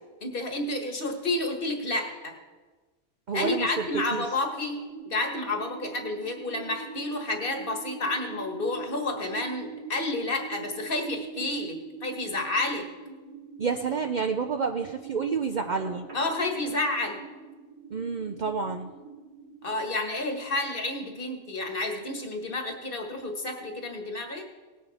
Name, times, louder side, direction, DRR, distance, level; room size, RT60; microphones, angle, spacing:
voice 1, 0.2-2.4 3.3-12.9 16.1-17.2 19.6-24.4, left 2 dB, 50° left, 4 dB, 1.6 m, -30 dB
voice 2, 3.3-4.2 13.6-16.1 17.9-18.9, right 5 dB, 50° right, 5 dB, 0.5 m, -29 dB
sound 1, 4.9-19.9, right 4 dB, 70° left, 2.2 m, -43 dB
Telephone, 15.7-16.8, right 1 dB, 35° right, 1.8 m, -44 dB
18.5 x 8.6 x 4.1 m, 1.3 s
omnidirectional pair, 1.3 m